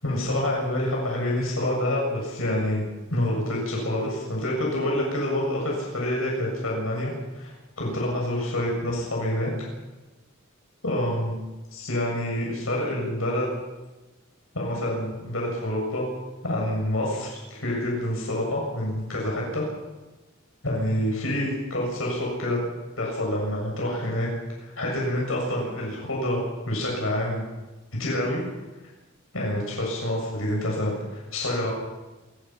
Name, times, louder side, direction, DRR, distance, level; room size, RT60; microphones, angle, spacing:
voice 1, 0.0-2.8 3.1-7.5 7.8-9.5 10.8-11.3 11.7-13.5 14.5-16.1 16.4-19.6 20.6-22.6 23.0-24.3 24.6-27.4 27.9-28.4 29.3-31.7, left 1 dB, 75° left, -2 dB, 7.3 m, -27 dB
27.5 x 21.0 x 5.9 m, 1.1 s
head